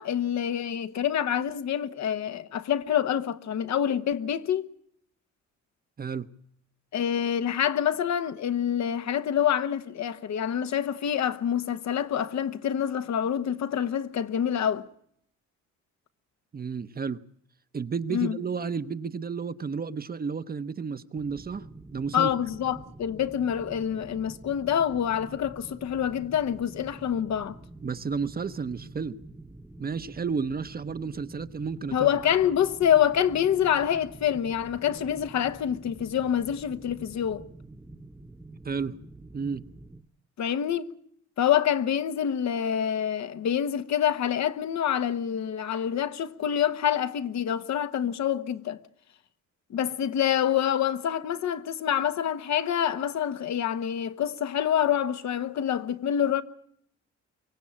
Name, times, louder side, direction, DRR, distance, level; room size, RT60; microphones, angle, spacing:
voice 1, 0.0-4.7 6.9-14.8 18.1-18.4 22.1-27.6 31.9-37.4 40.4-40.9 41.4-48.8 49.7-56.4, left 9 dB, 65° left, 1.1 m, -26 dB
voice 2, 16.5-17.2 17.7-22.3 27.8-29.1 29.8-32.1 38.6-39.0 39.3-39.6, right 5 dB, 30° right, 0.9 m, -32 dB
sound 1, 21.1-40.0, right 2 dB, 5° right, 1.1 m, -47 dB
24.0 x 16.0 x 8.7 m
cardioid pair, 90°, 30 cm